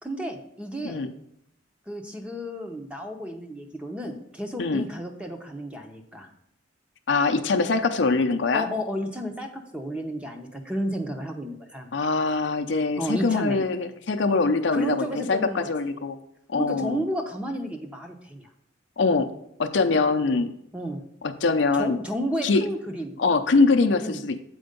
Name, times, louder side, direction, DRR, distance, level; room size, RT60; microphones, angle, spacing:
voice 1, 0.0-1.0 1.9-6.3 8.5-11.9 13.0-13.6 14.7-15.7 16.5-18.5 20.7-21.0 21.8-23.2 24.0-24.2, equal, 5° right, 3 dB, 0.7 m, -32 dB
voice 2, 7.1-8.7 11.9-16.2 16.5-17.0 19.0-19.3 19.6-20.5 21.2-22.0 22.4-22.7 23.2-24.4, left 3 dB, 60° left, 6 dB, 0.5 m, -23 dB
7.7 x 4.5 x 5.2 m, 0.76 s
head